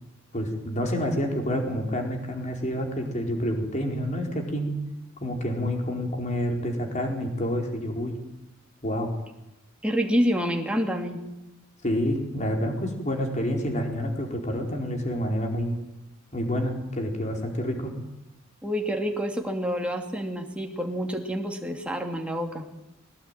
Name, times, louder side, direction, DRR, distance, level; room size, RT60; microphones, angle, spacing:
voice 1, 0.3-4.7 5.2-8.1 8.8-9.1 11.8-15.8 16.3-17.9, equal, 35° left, 2 dB, 4.5 m, -28 dB
voice 2, 9.8-11.2 18.6-22.7, equal, 5° right, 2 dB, 2.6 m, -28 dB
21.5 x 18.0 x 9.1 m, 0.94 s
head